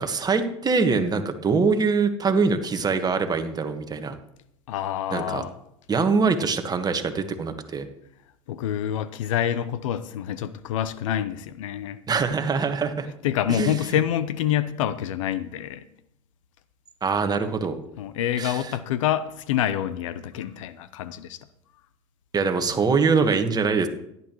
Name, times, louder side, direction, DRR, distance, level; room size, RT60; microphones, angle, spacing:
voice 1, 0.0-4.2 5.1-5.4 5.9-7.9 12.1-13.1 13.5-14.0 17.0-17.8 18.4-18.7 22.3-23.9, right 4 dB, 25° right, 7 dB, 1.5 m, -23 dB
voice 2, 4.7-5.5 8.5-12.0 13.2-15.9 18.0-21.4, left 10 dB, 75° left, 15 dB, 0.7 m, -27 dB
17.0 x 11.0 x 3.1 m, 0.76 s
hypercardioid pair, 90°, 16 cm